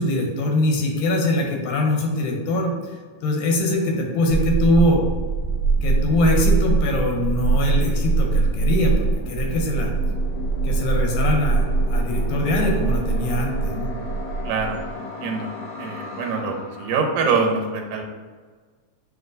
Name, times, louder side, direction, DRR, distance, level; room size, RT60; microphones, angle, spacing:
voice 1, 0.0-2.7 3.2-5.0 5.8-9.9 10.7-11.7 11.9-13.9, left 1 dB, 90° left, 1 dB, 2.2 m, -22 dB
sound 1, 2.4-17.0, left 4 dB, 65° left, 1.5 m, -38 dB
sound 2, 4.3-14.9, right 4 dB, 60° right, 0.8 m, -23 dB
voice 2, 14.4-15.5 15.8-18.0, right 4 dB, 80° right, 3 dB, 2.0 m, -24 dB
6.2 x 2.5 x 2.5 m, 1.4 s
omnidirectional pair, 3.4 m